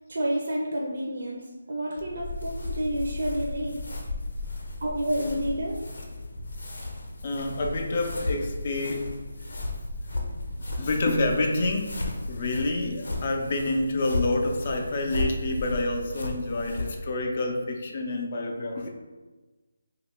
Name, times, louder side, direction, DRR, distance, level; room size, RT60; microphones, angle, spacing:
voice 1, 0.1-3.8 4.8-5.8, right 1 dB, 60° right, -2 dB, 0.5 m, -29 dB
sound 1, 2.0-17.0, left 2 dB, 80° left, 0.7 m, -34 dB
voice 2, 7.2-9.1 10.7-18.9, left 2 dB, 40° left, 2 dB, 0.4 m, -28 dB
2.8 x 2.3 x 3.6 m, 1.2 s
figure-of-eight pair, 170°, 0 cm